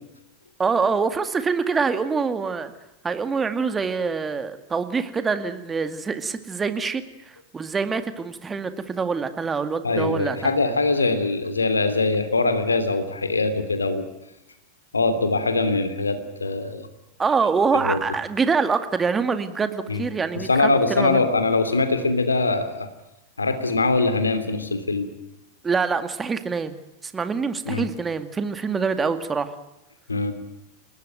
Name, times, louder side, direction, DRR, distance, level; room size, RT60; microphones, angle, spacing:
voice 1, 0.6-2.7 3.0-10.5 17.2-21.3 25.6-29.5, right 5 dB, 15° right, 10 dB, 2.2 m, -25 dB
voice 2, 9.8-14.1 14.9-16.9 17.8-18.0 19.9-20.0 20.3-22.9 23.4-25.1 27.7-27.9 30.1-30.3, left 3 dB, 75° left, 10 dB, 3.0 m, -22 dB
29.5 x 19.0 x 9.3 m, 0.93 s
figure-of-eight pair, 90°, 0 cm